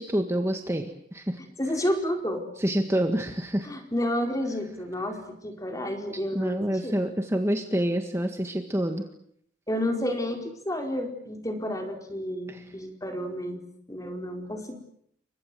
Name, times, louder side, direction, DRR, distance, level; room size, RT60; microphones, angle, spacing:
voice 1, 0.0-1.4 2.6-3.7 6.3-9.0 12.5-12.7, right 1 dB, 15° right, 5 dB, 1.8 m, -27 dB
voice 2, 1.6-2.4 3.6-7.0 9.7-13.6 13.9-14.8, equal, 20° left, 4 dB, 4.6 m, -30 dB
29.5 x 24.5 x 7.8 m, 0.70 s
head